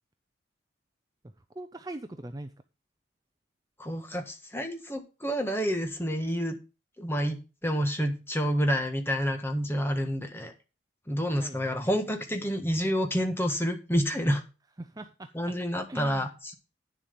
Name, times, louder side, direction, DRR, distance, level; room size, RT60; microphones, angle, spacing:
voice 1, 1.6-2.5 11.4-11.9 14.8-15.3 15.9-16.3, right 1 dB, 20° right, 8 dB, 0.5 m, -41 dB
voice 2, 3.8-6.5 7.0-10.5 11.1-14.4 15.3-16.5, equal, 10° left, 5 dB, 1.5 m, -29 dB
10.5 x 7.3 x 5.2 m, 0.32 s
head